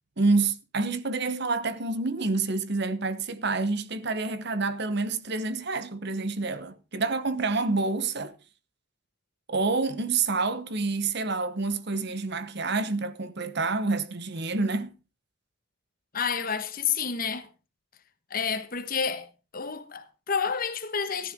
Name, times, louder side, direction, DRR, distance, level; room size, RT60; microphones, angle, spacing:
voice 1, 0.2-8.3 9.5-14.9, right 3 dB, 50° right, 1.0 m, -28 dB
voice 2, 16.1-17.5 18.3-19.3 19.5-21.3, left 6 dB, 45° left, 1.3 m, -29 dB
14.0 x 12.5 x 3.7 m
head